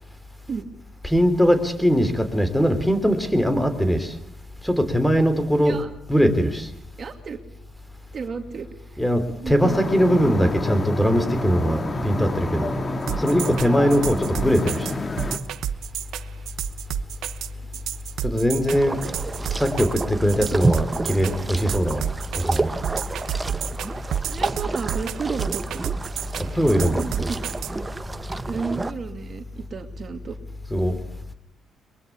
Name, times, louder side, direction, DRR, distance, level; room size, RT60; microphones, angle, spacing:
voice 1, 1.0-4.2 4.6-5.8 6.1-6.7 9.0-12.7 13.2-14.9 18.2-19.0 19.5-22.1 22.3-22.7 26.4-27.3 30.7-31.0, equal, 5° left, 3.4 m, -21 dB
voice 2, 7.0-7.4 8.1-9.0 9.4-9.9 12.2-12.3 17.6-17.7 18.8-19.0 19.2-19.4 20.3-20.5 24.0-25.8 27.0-27.4 28.5-30.4, right 5 dB, 45° right, 2.5 m, -33 dB
sound 1, 9.6-15.4, left 2 dB, 30° left, 2.2 m, -28 dB
sound 2, 13.1-27.7, right 10 dB, 80° right, 1.0 m, -30 dB
sound 3, 18.7-28.9, right 2 dB, 20° right, 1.0 m, -30 dB
22.5 x 22.5 x 8.6 m
cardioid pair, 90°, 0 cm